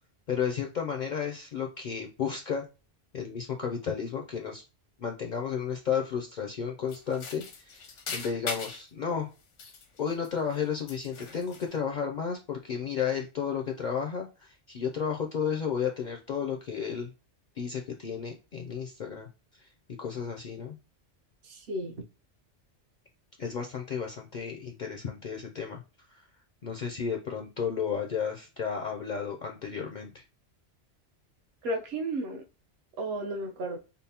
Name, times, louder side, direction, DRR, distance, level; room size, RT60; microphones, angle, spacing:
voice 1, 0.3-2.6 3.1-4.6 5.0-9.3 10.0-17.1 17.6-19.3 19.5-19.7 20.0-20.8 23.4-25.8 26.1-26.3 26.6-30.2, left 7 dB, 60° left, 0.5 m, -33 dB
sound 1, 6.9-8.9 9.4-10.6 10.9-11.7, left 5 dB, 85° left, 1.1 m, -40 dB
voice 2, 21.5-22.0 31.6-32.4 33.0-33.8, right 1 dB, 65° right, 0.9 m, -33 dB
5.1 x 2.0 x 2.8 m
omnidirectional pair, 1.2 m